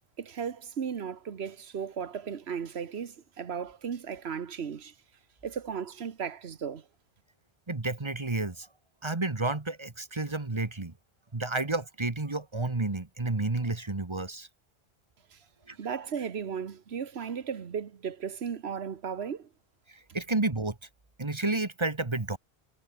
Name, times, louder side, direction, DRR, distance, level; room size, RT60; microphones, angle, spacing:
voice 1, 0.2-4.9 5.4-6.8 15.3-15.4 15.7-19.5, right 7 dB, 85° right, 1.4 m, -36 dB
voice 2, 7.7-8.7 9.0-10.9 11.3-14.5 15.7-15.8 19.9-20.8 21.2-22.4, right 2 dB, 30° right, 1.5 m, -31 dB
omnidirectional pair, 1.0 m